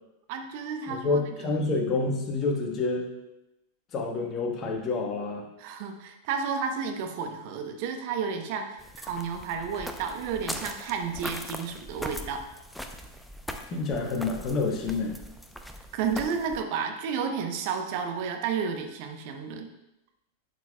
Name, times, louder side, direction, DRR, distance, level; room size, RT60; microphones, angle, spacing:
voice 1, 0.3-1.3 5.6-12.4 15.9-19.7, right 6 dB, 45° right, 5 dB, 0.9 m, -32 dB
voice 2, 0.9-3.1 3.9-5.4 13.7-15.2, left 3 dB, 30° left, 2 dB, 1.3 m, -28 dB
sound 1, 8.8-16.6, equal, ahead, 0.6 m, -40 dB
11.0 x 7.1 x 2.3 m, 0.91 s
figure-of-eight pair, 90°, 0 cm